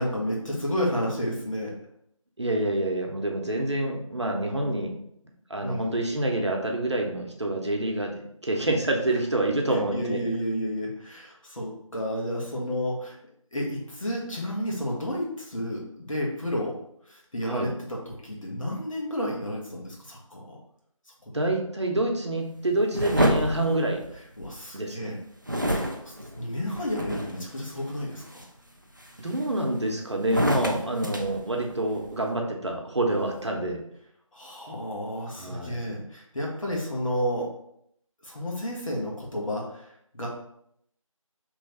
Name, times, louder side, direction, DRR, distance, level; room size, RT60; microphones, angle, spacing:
voice 1, 0.0-1.7 5.6-6.0 9.7-13.2 13.5-16.8 17.0-20.6 21.3-21.4 24.4-25.2 25.7-28.3 34.3-37.5 38.2-40.3, equal, 70° left, -3 dB, 1.5 m, -31 dB
voice 2, 2.4-4.9 5.5-10.2 17.5-17.7 21.3-24.0 24.7-25.1 29.2-33.8 35.4-35.8, right 1 dB, 55° right, 1 dB, 0.8 m, -27 dB
sound 1, 22.9-24.6 25.5-27.5 28.0-28.4 29.0-29.8 30.2-32.1, equal, 35° right, 0.4 m, -29 dB
3.2 x 3.1 x 4.1 m, 0.72 s
figure-of-eight pair, 175°, 18 cm